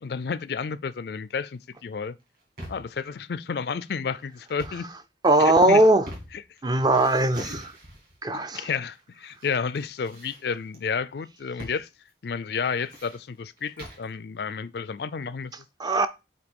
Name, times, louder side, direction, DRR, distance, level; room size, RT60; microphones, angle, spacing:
voice 1, 0.0-2.2 2.7-4.8 5.4-5.8 7.4-7.5 8.3-11.9 12.2-15.7, left 6 dB, 55° left, 0.4 m, -31 dB
sound 1, 2.2-3.0 4.4-4.9 5.4-6.6 6.9-8.2 8.9-9.5 9.7-10.8 11.6-11.8 12.1-12.2 12.6-14.1, equal, 50° right, 2.7 m, -43 dB
voice 2, 5.2-6.1 6.6-7.7 8.2-8.7 15.8-16.1, right 2 dB, 20° right, 0.4 m, -19 dB
8.1 x 2.7 x 5.2 m
head